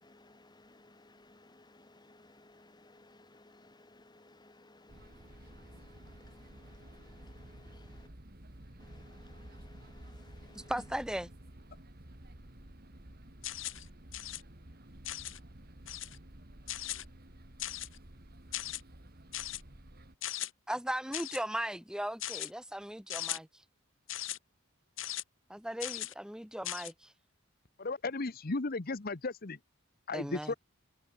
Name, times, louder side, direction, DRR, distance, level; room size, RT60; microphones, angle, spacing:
voice 1, 0.0-8.1 8.8-10.7, left 2 dB, 20° left, 1.3 m, -59 dB
sound 1, 4.9-20.2, right 1 dB, 45° right, 2.4 m, -52 dB
voice 2, 10.5-11.3 20.7-23.6 25.5-27.1 30.1-30.5, equal, 5° right, 1.6 m, -37 dB
sound 2, 13.4-13.8 14.1-14.4 15.0-15.4 15.9-16.2 16.7-17.0 17.6-18.0 18.5-18.8 19.3-19.6 20.2-20.5 21.1-21.4 22.2-22.5 23.1-23.4 24.1-24.4 25.0-25.2 25.8-26.1 26.6-26.9, left 13 dB, 65° left, 2.2 m, -38 dB
voice 3, 27.8-29.6 30.1-30.5, left 3 dB, 45° left, 0.9 m, -35 dB
head